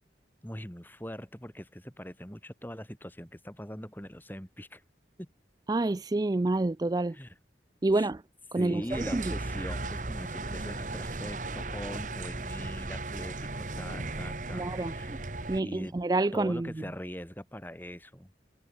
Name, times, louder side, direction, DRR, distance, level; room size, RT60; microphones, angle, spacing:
voice 1, 0.4-4.8 5.2-5.3 7.1-7.3 7.9-8.1 8.6-15.2 15.6-15.9 16.3-18.3, equal, 10° left, 5.3 m, -42 dB
voice 2, 5.7-7.2 7.8-8.2 8.5-9.2 14.5-15.2 15.5-16.7, right 2 dB, 20° right, 0.4 m, -28 dB
sound 1, 8.9-15.6, right 2 dB, 45° right, 1.8 m, -36 dB
head